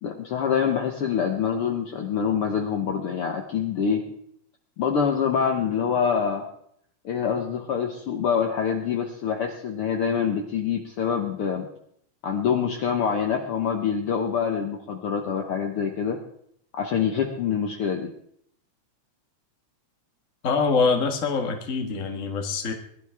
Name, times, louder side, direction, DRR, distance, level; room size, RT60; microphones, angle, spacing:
voice 1, 0.0-4.1 4.8-6.4 7.0-11.7 12.2-16.2 16.8-18.1, left 7 dB, 60° left, 3 dB, 1.7 m, -25 dB
voice 2, 20.4-22.7, left 4 dB, 35° left, 4 dB, 1.6 m, -24 dB
21.5 x 12.0 x 3.5 m, 0.68 s
omnidirectional pair, 3.3 m